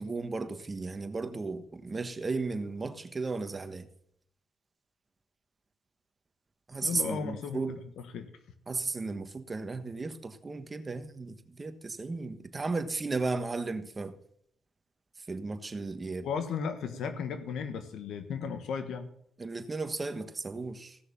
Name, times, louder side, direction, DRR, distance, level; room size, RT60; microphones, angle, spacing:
voice 1, 0.0-3.9 6.7-7.7 8.7-14.2 15.3-16.3 19.4-21.0, right 3 dB, 25° right, 1.3 m, -35 dB
voice 2, 6.8-8.3 16.2-19.1, left 6 dB, 75° left, 1.4 m, -35 dB
16.0 x 6.5 x 7.0 m
cardioid pair, 90°, 0 cm